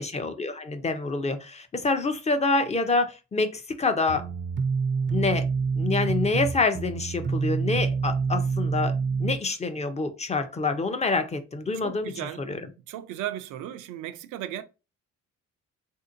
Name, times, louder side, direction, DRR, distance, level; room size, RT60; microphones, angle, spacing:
voice 1, 0.0-4.3 5.1-5.5 5.8-8.9 9.2-12.1 12.5-12.6, left 3 dB, 20° left, 0.5 m, -27 dB
sound 1, 4.1-9.4, right 5 dB, 40° right, 0.4 m, -27 dB
voice 2, 11.7-12.5 12.9-14.6, right 12 dB, 90° right, 0.5 m, -35 dB
3.5 x 2.7 x 2.5 m
cardioid pair, 90°, 30 cm